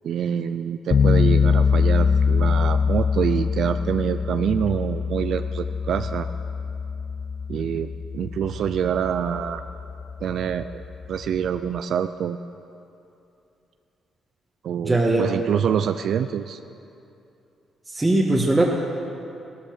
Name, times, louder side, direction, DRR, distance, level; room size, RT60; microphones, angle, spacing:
voice 1, 0.0-6.3 7.5-9.6 10.2-10.8 11.1-12.4 14.6-16.6, right 8 dB, 65° right, 10 dB, 0.4 m, -26 dB
sound 1, 0.9-11.8, left 6 dB, 45° left, 0.3 m, -24 dB
voice 2, 14.8-15.3 17.9-18.7, right 2 dB, 15° right, -3 dB, 1.6 m, -20 dB
16.0 x 13.5 x 6.6 m, 2.7 s
cardioid pair, 90°, 0 cm